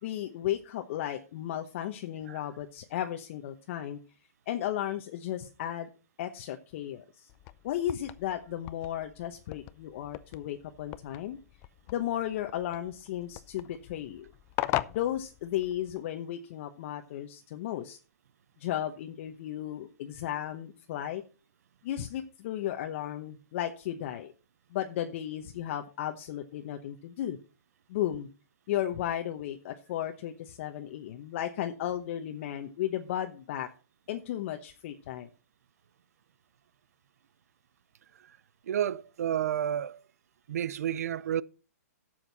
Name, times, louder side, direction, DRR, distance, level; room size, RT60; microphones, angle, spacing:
voice 1, 0.0-4.0 4.5-5.9 6.2-7.3 7.6-11.4 11.9-14.2 14.9-18.0 18.6-21.2 21.8-24.3 24.7-27.4 27.9-28.3 28.7-33.7 34.1-35.3, left 11 dB, 50° left, 1.0 m, -34 dB
sound 1, 7.3-16.0, left 18 dB, 30° left, 0.5 m, -40 dB
voice 2, 38.6-40.0 40.5-41.4, right 10 dB, 70° right, 0.6 m, -31 dB
12.0 x 7.7 x 4.1 m
hypercardioid pair, 140°, 9 cm